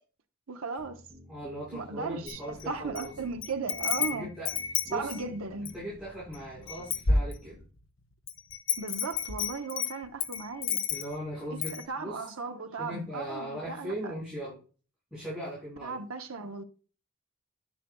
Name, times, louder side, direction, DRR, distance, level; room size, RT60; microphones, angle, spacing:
voice 1, 0.5-1.0 1.7-4.3 4.9-5.7 8.8-10.8 11.5-14.1 15.8-16.6, right 4 dB, 85° right, 0.9 m, -36 dB
sound 1, 0.8-7.6, equal, 20° right, 3.0 m, -53 dB
voice 2, 1.3-3.3 3.9-4.5 4.9-5.1 5.7-7.6 10.9-12.2 12.8-14.6 15.1-16.0, equal, 5° right, 5.5 m, -39 dB
Wind chime, 2.3-3.1 3.4-5.8 6.3-6.4 6.7-7.8 8.3-11.2 11.6-11.8, left 5 dB, 70° left, 0.9 m, -30 dB
10.0 x 9.9 x 2.3 m
head